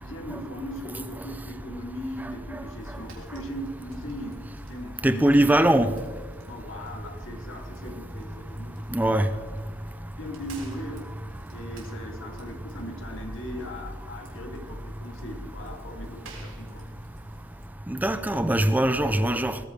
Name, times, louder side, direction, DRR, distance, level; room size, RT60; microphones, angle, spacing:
voice 1, 0.0-4.4 4.6-5.8 6.5-8.8 9.1-9.5 10.2-11.0 11.5-16.9, equal, 75° left, 2.8 m, -39 dB
Fire, 2.8-17.7, right 2 dB, 85° right, 4.2 m, -51 dB
voice 2, 5.0-5.9 8.9-9.3 17.9-19.6, right 1 dB, 10° right, 0.5 m, -21 dB
20.5 x 15.0 x 3.4 m
head